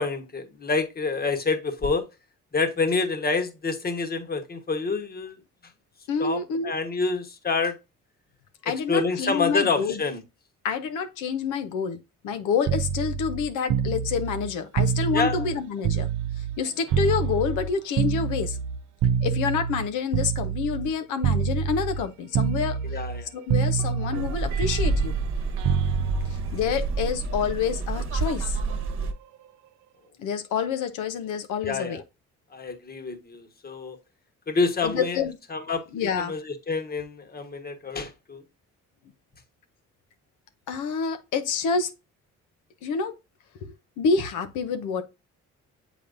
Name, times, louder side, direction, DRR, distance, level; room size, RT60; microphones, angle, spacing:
voice 1, 0.0-2.0 2.5-5.3 6.2-7.8 8.9-10.2 15.1-15.5 22.9-23.3 31.6-32.0 32.5-34.0 34.5-35.2 35.5-35.8 36.2-38.4, left 4 dB, 30° left, 1.2 m, -27 dB
voice 2, 6.1-6.7 8.6-10.0 10.6-16.1 16.4-18.6 19.2-22.8 23.3-25.2 26.2-28.6 30.2-32.0 34.8-35.4 35.9-36.3 40.7-41.9 42.8-43.1 43.6-45.0, left 6 dB, 90° left, 0.7 m, -28 dB
sound 1, 12.7-16.6 16.9-20.9 21.2-22.1 22.3-23.2 23.5-27.5 28.7-28.9, right 7 dB, 75° right, 0.5 m, -27 dB
sound 2, 24.1-29.1, right 3 dB, 45° right, 1.1 m, -29 dB
7.1 x 5.1 x 2.6 m
cardioid pair, 90°, 30 cm